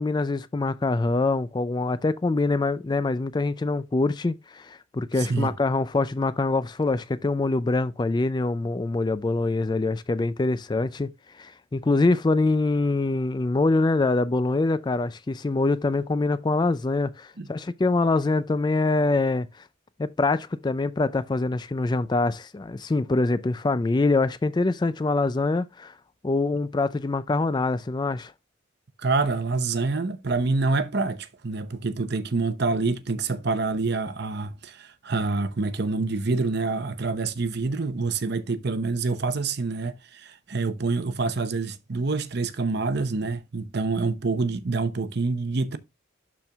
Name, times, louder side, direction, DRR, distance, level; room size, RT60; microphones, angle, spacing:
voice 1, 0.0-11.1 11.3-19.5 20.0-25.9 26.2-28.3, left 3 dB, 20° left, 0.3 m, -24 dB
voice 2, 5.2-5.5 17.4-17.5 29.0-45.8, right 3 dB, 55° right, 0.8 m, -27 dB
12.0 x 4.4 x 2.3 m
head